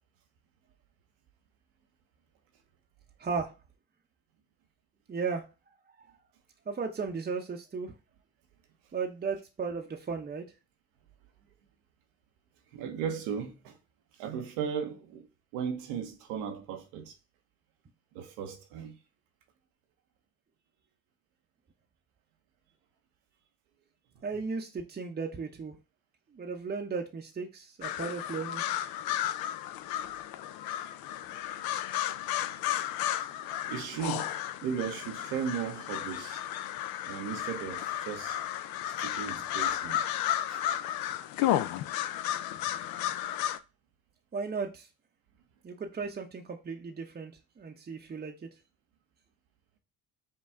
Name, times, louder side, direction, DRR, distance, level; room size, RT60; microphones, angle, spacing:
voice 1, 3.2-3.5 5.1-5.5 6.7-7.9 8.9-10.4 24.2-25.8 26.3-28.6 44.3-44.9 45.6-48.3, right 5 dB, 25° right, 0.7 m, -35 dB
voice 2, 12.7-13.8 14.2-15.3 15.5-17.2 18.1-19.0 33.7-36.4 37.0-38.4 39.0-40.0 40.5-40.6, right 7 dB, 85° right, 1.0 m, -36 dB
sound 1, 27.8-43.6, left 12 dB, 70° left, 0.5 m, -33 dB
5.5 x 2.3 x 3.4 m
supercardioid pair, 70°, 37 cm